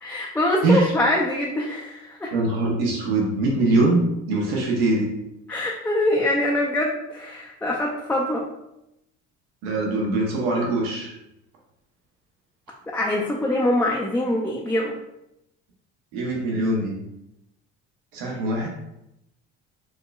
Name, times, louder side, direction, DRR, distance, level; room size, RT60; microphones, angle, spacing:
voice 1, 0.0-2.3 5.5-8.4 12.8-15.0, left 1 dB, 5° left, -3 dB, 0.4 m, -24 dB
voice 2, 2.3-5.1 9.6-11.1 16.1-16.9 18.1-18.7, right 2 dB, 80° right, -2 dB, 0.9 m, -22 dB
4.6 x 2.2 x 2.3 m, 0.86 s
hypercardioid pair, 70°, 36 cm